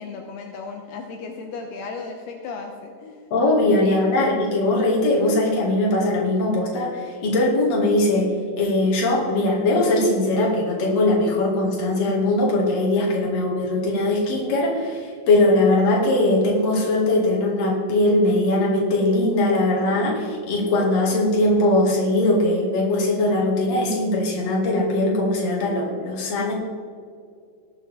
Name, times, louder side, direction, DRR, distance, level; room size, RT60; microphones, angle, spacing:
voice 1, 0.0-3.2 3.8-4.4, left 4 dB, 75° left, 2 dB, 2.7 m, -35 dB
voice 2, 3.3-26.5, left 2 dB, 45° left, -3 dB, 2.7 m, -20 dB
19.5 x 7.4 x 3.5 m, 2.2 s
omnidirectional pair, 4.7 m